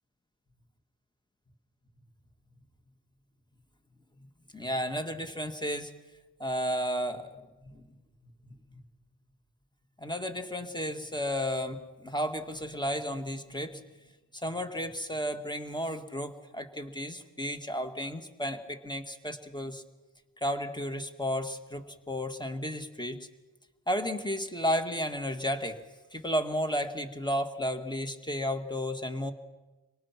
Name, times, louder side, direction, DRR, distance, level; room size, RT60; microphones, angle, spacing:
voice 1, 4.5-5.9 6.4-7.8 8.7-8.8 10.0-14.1 14.4-19.8 20.4-23.2 23.9-25.8 26.1-29.3, equal, 10° left, 7 dB, 2.1 m, -33 dB
25.5 x 18.5 x 6.1 m, 1.2 s
cardioid pair, 45°, 46 cm